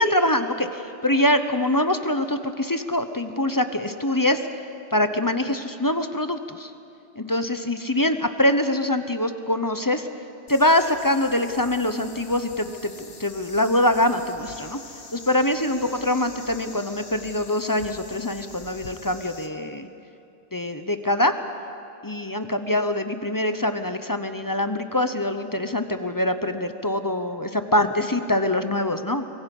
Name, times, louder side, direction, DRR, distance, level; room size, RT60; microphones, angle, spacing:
voice 1, 0.0-4.5 4.9-6.7 7.2-10.1 10.5-14.8 15.1-19.9 20.5-21.4 22.0-29.2, left 1 dB, 20° left, 8 dB, 0.7 m, -24 dB
sound 1, 10.5-19.5, left 4 dB, 50° left, 1.4 m, -44 dB
24.5 x 23.5 x 5.4 m, 2.7 s
omnidirectional pair, 1.3 m